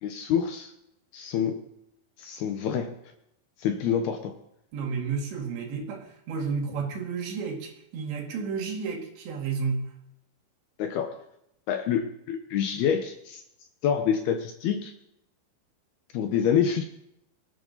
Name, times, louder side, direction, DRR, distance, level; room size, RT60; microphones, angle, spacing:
voice 1, 0.0-0.7 1.1-1.6 2.2-2.9 3.6-4.3 10.8-11.2 11.7-13.4 13.8-14.9 16.1-16.8, left 8 dB, 70° left, 2.5 m, -27 dB
voice 2, 4.7-9.8, right 5 dB, 70° right, 4.3 m, -31 dB
24.5 x 11.0 x 4.0 m
omnidirectional pair, 5.4 m